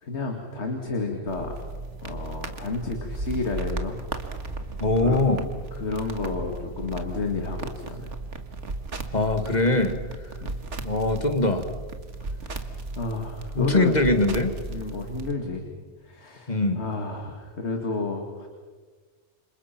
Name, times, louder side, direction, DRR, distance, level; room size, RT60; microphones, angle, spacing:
voice 1, 0.0-1.5 2.0-4.0 5.0-8.1 10.4-10.7 12.3-14.0 14.7-15.6 16.0-18.5, left 3 dB, 70° left, 3 dB, 2.6 m, -31 dB
sound 1, 1.3-15.3, right 3 dB, 85° right, 2.1 m, -35 dB
voice 2, 4.8-5.4 9.1-9.9 10.8-11.7 13.6-14.5 16.5-16.8, left 2 dB, 35° left, 7 dB, 2.1 m, -22 dB
29.5 x 26.5 x 6.0 m, 1.4 s
omnidirectional pair, 1.2 m